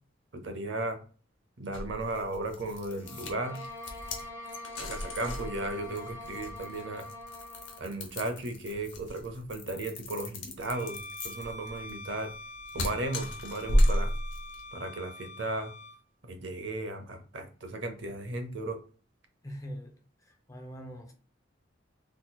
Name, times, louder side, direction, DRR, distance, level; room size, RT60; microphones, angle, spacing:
voice 1, 0.3-1.0 1.6-3.6 4.8-7.1 7.8-12.3 12.7-14.1 14.7-15.7 16.2-18.8, right 2 dB, 75° right, 0.7 m, -35 dB
sound 1, 1.7-14.7, equal, 80° left, 0.8 m, -33 dB
sound 2, 3.0-7.9, left 2 dB, 15° right, 0.9 m, -44 dB
Bowed string instrument, 10.6-16.0, left 1 dB, 55° left, 1.1 m, -45 dB
voice 2, 19.4-21.1, equal, 20° left, 0.5 m, -43 dB
3.9 x 2.9 x 2.2 m
head